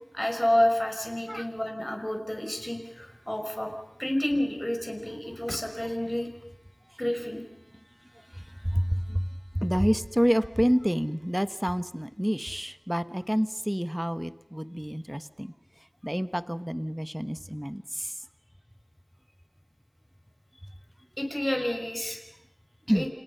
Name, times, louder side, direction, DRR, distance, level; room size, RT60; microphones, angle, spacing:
voice 1, 0.1-3.7 4.0-6.3 7.0-7.4 21.2-22.2 22.9-23.1, left 1 dB, 20° left, 3 dB, 5.5 m, -29 dB
voice 2, 8.6-9.3 9.5-15.5 16.0-18.1 22.9-23.1, equal, 5° right, 12 dB, 1.1 m, -28 dB
29.0 x 29.0 x 5.7 m, 0.90 s
wide cardioid pair, 50°, 0 cm